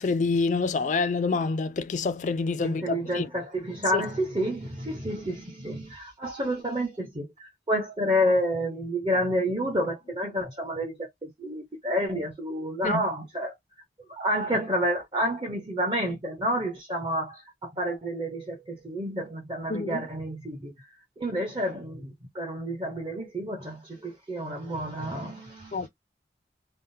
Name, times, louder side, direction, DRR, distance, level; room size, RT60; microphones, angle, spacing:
voice 1, 0.0-3.3 3.9-4.0 12.8-13.0 19.7-20.1 25.7-25.9, left 4 dB, 40° left, 0.3 m, -27 dB
voice 2, 2.6-13.5 14.1-20.7 21.2-25.9, equal, 30° right, 0.7 m, -29 dB
3.5 x 2.0 x 2.6 m
head